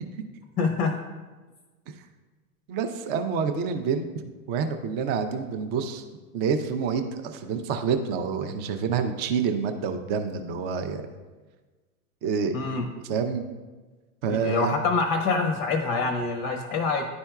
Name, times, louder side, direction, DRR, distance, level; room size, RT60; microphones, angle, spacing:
voice 1, 0.6-1.0 12.5-12.9 14.3-17.1, left 4 dB, 25° left, 5 dB, 0.5 m, -25 dB
voice 2, 2.7-4.1 4.5-6.0 6.3-11.0 12.2-12.5 13.1-13.5 14.2-14.7, right 6 dB, 25° right, 7 dB, 0.3 m, -27 dB
10.5 x 4.3 x 2.3 m, 1.3 s
hypercardioid pair, 105°, 45 cm